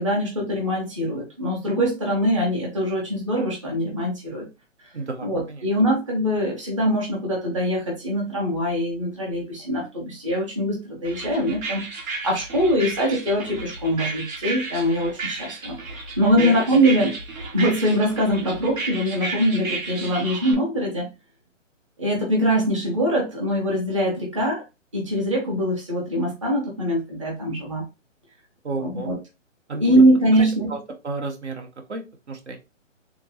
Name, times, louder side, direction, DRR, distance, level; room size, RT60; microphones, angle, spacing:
voice 1, 0.0-4.5 5.2-15.7 16.2-17.1 17.5-21.1 22.0-24.6 24.9-27.8 28.8-29.2 29.8-30.7, equal, 25° right, -2 dB, 0.8 m, -23 dB
voice 2, 4.9-5.6 16.4-16.6 16.9-17.0 28.6-29.1 29.7-30.0 30.3-30.8 31.0-32.6, right 3 dB, 60° right, 4 dB, 0.9 m, -32 dB
sound 1, 11.0-20.5, right 3 dB, 85° right, 1.3 m, -33 dB
3.5 x 2.9 x 2.7 m, 0.27 s
hypercardioid pair, 180°, 39 cm